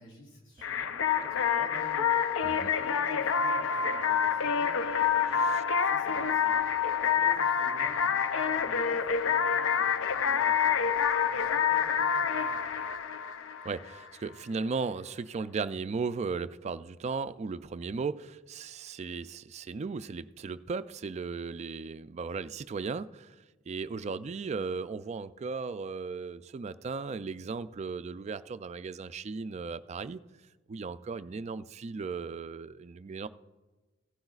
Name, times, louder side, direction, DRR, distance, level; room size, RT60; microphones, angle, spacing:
voice 1, 0.0-2.2 2.7-12.6, right 1 dB, 70° left, -2 dB, 4.1 m, -51 dB
sound 1, 0.6-14.1, left 7 dB, 90° left, 0.5 m, -27 dB
voice 2, 13.6-23.4 23.7-30.2 30.7-33.3, right 4 dB, 35° right, 13 dB, 0.3 m, -36 dB
16.0 x 11.5 x 2.4 m, 1.2 s
head